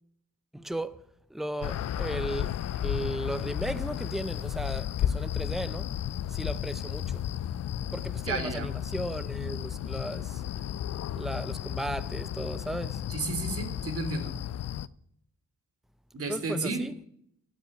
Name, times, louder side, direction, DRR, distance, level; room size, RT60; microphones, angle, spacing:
voice 1, 0.5-0.9 1.3-2.5 2.8-5.9 6.3-7.2 7.9-10.4 11.1-13.0 16.3-16.9, right 1 dB, ahead, 0.6 m, -35 dB
sound 1, 1.6-14.9, left 11 dB, 65° left, 0.5 m, -33 dB
voice 2, 8.3-8.7 13.1-14.3 16.1-16.8, right 3 dB, 55° right, 2.3 m, -32 dB
10.5 x 7.7 x 9.1 m
wide cardioid pair, 130°, 29 cm